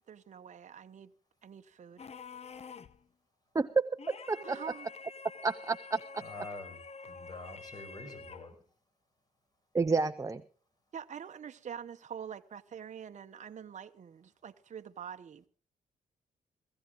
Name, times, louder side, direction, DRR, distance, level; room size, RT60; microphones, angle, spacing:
voice 1, 0.1-1.1 1.4-2.0 4.4-4.9 10.9-15.5, right 8 dB, 50° right, 0.9 m, -45 dB
sound 1, 2.0-3.0 4.0-8.6, left 4 dB, 45° left, 0.9 m, -48 dB
voice 2, 3.5-4.6 5.4-6.2 9.7-10.4, right 4 dB, 20° right, 0.6 m, -30 dB
voice 3, 6.2-6.8 7.1-8.6, left 2 dB, 25° left, 5.4 m, -46 dB
17.5 x 14.5 x 3.7 m
cardioid pair, 70°, 15 cm